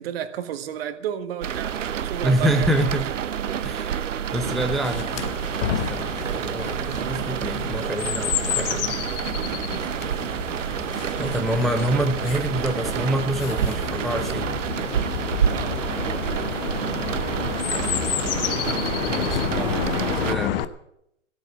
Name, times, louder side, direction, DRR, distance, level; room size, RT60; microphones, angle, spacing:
voice 1, 0.0-2.7 15.5-15.8 19.5-20.4, right 9 dB, 50° right, 1.6 m, -33 dB
sound 1, 1.4-20.3, right 8 dB, 75° right, 0.8 m, -28 dB
voice 2, 2.2-3.1 3.6-5.3 5.7-9.0 11.2-14.5 19.1-19.7 20.2-20.6, equal, ahead, 0.7 m, -26 dB
Chirp tweet, 4.4-20.6, left 11 dB, 45° left, 1.0 m, -30 dB
15.5 x 8.6 x 8.9 m
figure-of-eight pair, 115°, 38 cm